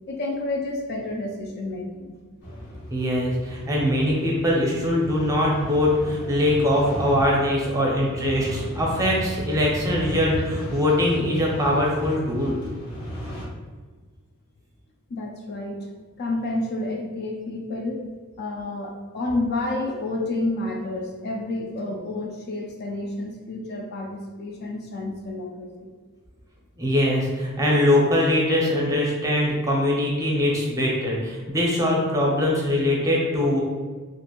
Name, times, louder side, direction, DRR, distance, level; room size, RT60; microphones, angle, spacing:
voice 1, 0.1-2.2 4.7-4.8 15.1-15.9 16.2-18.1 18.4-25.9, left 2 dB, 45° left, 1 dB, 0.3 m, -30 dB
sound 1, 2.4-13.5, equal, 85° left, 1.1 m, -35 dB
voice 2, 2.9-12.6 26.8-33.6, left 1 dB, 15° right, -3 dB, 0.6 m, -22 dB
2.5 x 2.5 x 2.9 m, 1.4 s
head